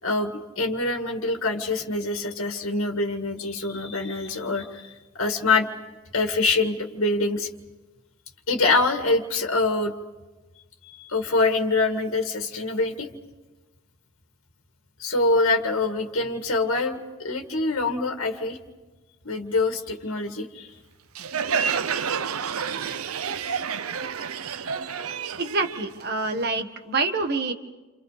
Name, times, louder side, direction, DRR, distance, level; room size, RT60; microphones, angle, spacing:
voice 1, 0.0-5.7 6.1-7.5 8.5-9.9 11.0-13.1 15.0-17.0 17.2-18.6 19.2-20.7, left 3 dB, 65° left, 4 dB, 1.9 m, -25 dB
Crowd, 21.2-26.6, right 6 dB, 75° right, 0.7 m, -29 dB
voice 2, 25.4-27.5, right 3 dB, 50° right, 6 dB, 1.6 m, -26 dB
29.0 x 27.5 x 5.0 m, 1.2 s
head